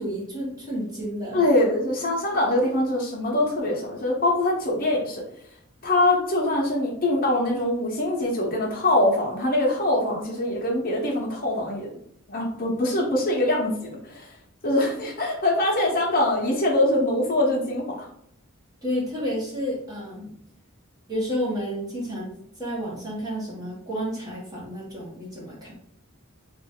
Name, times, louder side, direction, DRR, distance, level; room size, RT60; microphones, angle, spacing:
voice 1, 0.0-1.4 18.8-20.4 21.1-25.7, equal, 20° right, -6 dB, 1.4 m, -31 dB
voice 2, 1.3-5.2 5.8-12.0 12.3-14.3 14.6-17.9, left 1 dB, 40° left, -3 dB, 0.8 m, -23 dB
3.1 x 2.6 x 3.6 m, 0.71 s
head